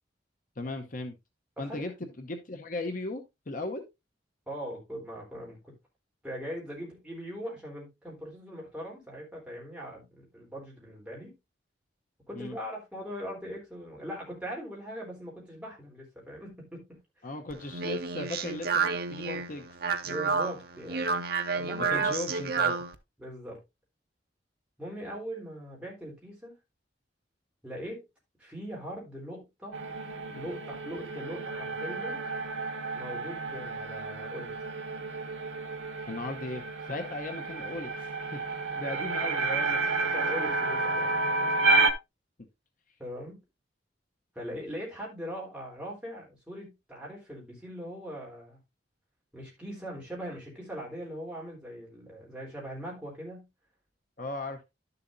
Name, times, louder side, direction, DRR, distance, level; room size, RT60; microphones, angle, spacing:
voice 1, 0.6-1.2 1.6-3.8 12.3-12.6 17.2-19.7 21.8-22.7 36.1-38.4 38.7-39.8 42.4-42.5 54.2-54.6, left 2 dB, 45° left, 0.9 m, -37 dB
voice 2, 4.5-5.6 6.2-11.4 12.3-17.3 20.0-21.1 21.6-22.1 23.2-23.6 24.8-26.6 27.6-28.0 28.4-29.8 30.2-32.2 32.9-34.6 38.8-39.0 40.1-41.5 43.0-43.4 44.3-48.6 49.3-53.5, equal, 5° right, 3.8 m, -41 dB
Speech, 17.5-22.9, right 5 dB, 55° right, 0.8 m, -30 dB
sound 1, 29.7-41.9, right 3 dB, 85° right, 0.9 m, -31 dB
11.0 x 6.9 x 2.6 m
head